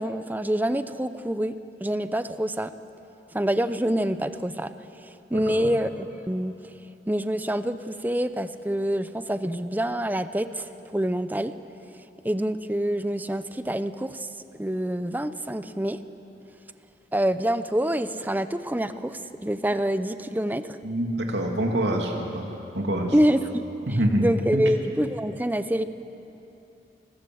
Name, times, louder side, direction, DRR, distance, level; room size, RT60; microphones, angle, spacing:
voice 1, 0.0-1.6 1.8-2.7 3.3-4.7 5.0-6.6 7.1-11.5 12.2-14.3 14.5-16.0 17.1-20.8 23.1-25.9, right 1 dB, 10° right, 11 dB, 0.7 m, -26 dB
voice 2, 5.3-5.7 20.8-22.5 22.7-23.1 23.9-24.3 24.5-24.7, right 1 dB, 85° right, 1 dB, 2.7 m, -26 dB
28.0 x 20.0 x 7.8 m, 2.9 s
head